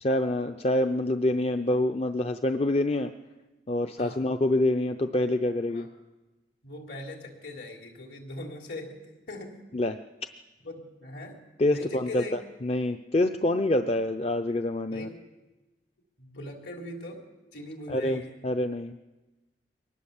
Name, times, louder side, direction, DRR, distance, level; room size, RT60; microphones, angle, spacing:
voice 1, 0.0-3.1 3.7-5.9 9.7-10.0 11.6-12.2 12.6-15.1 17.9-18.9, left 1 dB, 35° left, 7 dB, 0.6 m, -26 dB
voice 2, 6.6-9.0 9.3-9.6 10.6-11.4 11.7-12.4 14.9-15.2 16.2-17.2 17.5-18.4, left 2 dB, 70° left, 2 dB, 3.8 m, -40 dB
23.0 x 19.5 x 7.2 m, 1.1 s
head